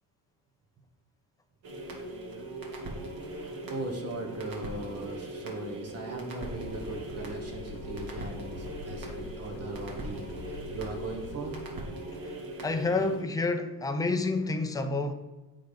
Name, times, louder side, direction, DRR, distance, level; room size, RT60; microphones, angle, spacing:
sound 1, 1.6-13.2, right 2 dB, 55° right, 2.0 m, -40 dB
voice 1, 3.3-11.6, right 2 dB, 35° right, 2 dB, 1.4 m, -39 dB
sound 2, 6.4-11.6, left 5 dB, 70° left, 1.0 m, -44 dB
voice 2, 12.6-15.1, left 3 dB, 10° left, 6 dB, 0.6 m, -28 dB
8.1 x 4.0 x 5.0 m, 1.1 s
cardioid pair, 130°, 42 cm